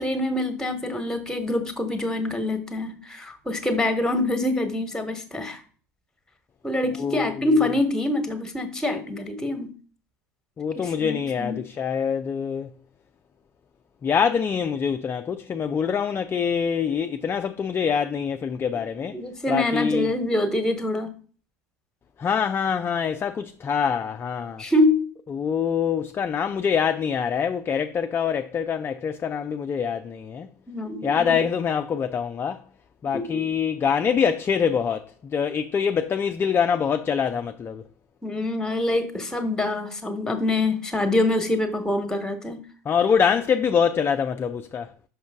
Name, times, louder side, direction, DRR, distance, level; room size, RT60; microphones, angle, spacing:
voice 1, 0.0-5.6 6.6-9.7 10.7-11.6 19.1-21.1 24.6-25.0 30.7-31.4 33.1-33.4 38.2-42.6, left 2 dB, 5° left, 1.3 m, -25 dB
voice 2, 7.0-7.5 10.6-12.7 14.0-19.2 19.5-20.1 22.2-24.6 25.3-30.5 31.0-32.6 33.0-37.8 42.9-44.9, left 7 dB, 25° left, 0.4 m, -25 dB
5.9 x 5.1 x 3.5 m
hypercardioid pair, 80°, 9 cm